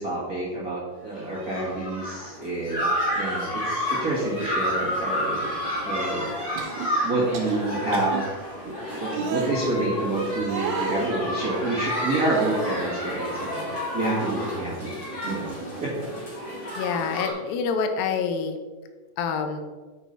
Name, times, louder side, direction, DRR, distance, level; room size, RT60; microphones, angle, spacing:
voice 1, 0.0-5.5 5.8-6.4 7.0-8.2 8.6-8.7 9.0-14.9 15.2-15.5 15.8-15.9, right 2 dB, 35° right, -7 dB, 1.6 m, -28 dB
sound 1, 1.2-17.3, equal, 30° left, 3.0 m, -30 dB
sound 2, 6.6-6.9 7.3-7.6 7.9-8.2 9.1-9.5 10.4-11.1 12.2-12.8 13.2-14.1 14.4-14.6 15.1-15.9 17.1-17.3, right 5 dB, 70° right, 2.3 m, -32 dB
voice 2, 16.7-18.6 19.2-19.6, left 5 dB, 85° left, 6 dB, 2.6 m, -27 dB
8.8 x 5.5 x 4.4 m, 1.4 s
omnidirectional pair, 4.0 m